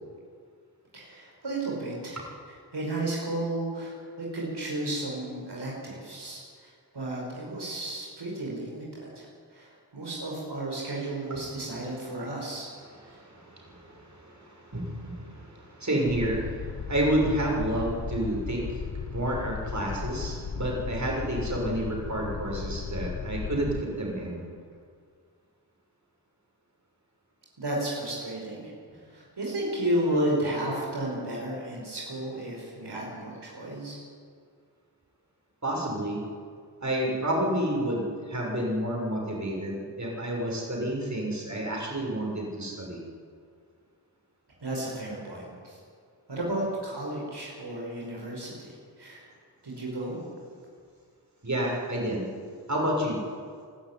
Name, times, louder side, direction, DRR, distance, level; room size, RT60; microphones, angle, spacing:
voice 1, 0.9-2.2 2.7-12.7 13.1-13.2 27.6-28.7 29.1-34.0 44.6-45.8 46.3-49.3 49.6-50.2, right 1 dB, 70° right, -3 dB, 5.4 m, -33 dB
voice 2, 12.9-24.5 35.6-36.2 36.8-43.0 51.4-52.3 52.7-53.2, right 1 dB, 40° right, -2 dB, 6.6 m, -30 dB
sound 1, 16.1-23.8, left 6 dB, 50° left, 0.9 m, -36 dB
22.5 x 12.5 x 9.9 m, 2.1 s
wide cardioid pair, 55°, 42 cm